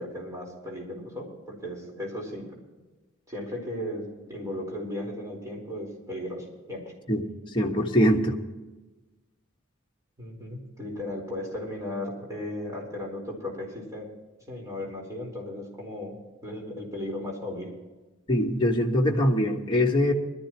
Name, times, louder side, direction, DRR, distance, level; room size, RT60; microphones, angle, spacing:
voice 1, 0.0-2.5 3.3-6.9 10.2-14.1 14.5-16.2 16.4-17.7, left 1 dB, 15° right, -2 dB, 4.6 m, -36 dB
voice 2, 7.5-8.4 18.3-20.1, equal, 25° left, -1 dB, 1.6 m, -23 dB
21.5 x 13.5 x 3.1 m, 1.2 s
head